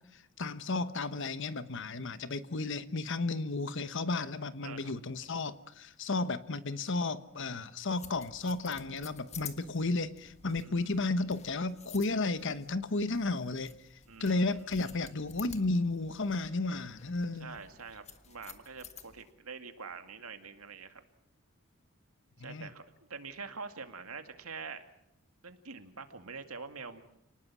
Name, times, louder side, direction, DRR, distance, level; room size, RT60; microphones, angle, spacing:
voice 1, 0.1-17.6 22.4-22.7, left 3 dB, 60° left, 1.1 m, -33 dB
voice 2, 4.6-4.9 10.6-11.1 14.1-14.5 17.4-21.0 22.4-22.8 23.1-24.8 25.4-27.0, right 5 dB, 80° right, 2.2 m, -45 dB
sound 1, 7.9-19.3, left 6 dB, 30° left, 1.6 m, -52 dB
29.0 x 19.5 x 6.2 m
head